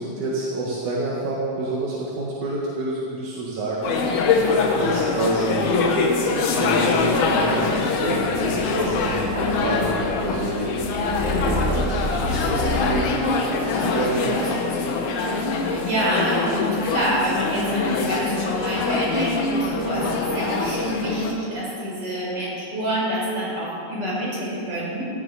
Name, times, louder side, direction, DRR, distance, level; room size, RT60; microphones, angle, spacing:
voice 1, 0.0-3.9 4.3-4.5 4.8-5.7 6.6-10.7 11.3-13.2 13.7-14.5, right 2 dB, 80° right, -5 dB, 3.2 m, -28 dB
sound 1, 3.8-21.3, left 4 dB, 85° left, 2.6 m, -23 dB
Purr, 7.0-12.8, equal, 20° left, 1.8 m, -31 dB
voice 2, 9.2-9.6 15.3-25.0, right 1 dB, 35° right, -6 dB, 5.1 m, -27 dB
17.0 x 14.0 x 4.1 m, 2.7 s
omnidirectional pair, 3.4 m